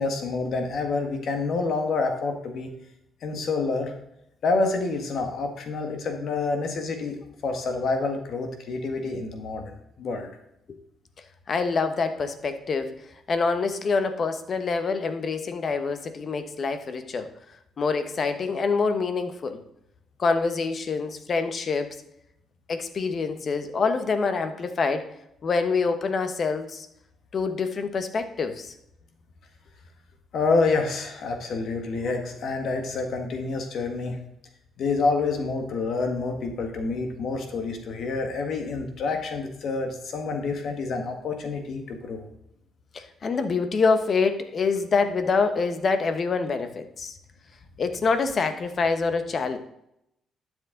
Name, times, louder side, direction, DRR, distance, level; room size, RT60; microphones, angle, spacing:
voice 1, 0.0-2.7 3.2-3.9 4.4-7.1 7.4-10.3 30.3-34.2 34.8-42.3, left 3 dB, 65° left, 5 dB, 1.8 m, -28 dB
voice 2, 11.5-12.9 13.3-17.3 17.8-19.6 20.2-22.0 22.7-25.1 25.4-26.9 27.3-28.7 42.9-47.1 47.8-49.6, left 4 dB, 45° left, 9 dB, 1.2 m, -26 dB
11.5 x 7.4 x 3.9 m, 0.81 s
cardioid pair, 90°, 0 cm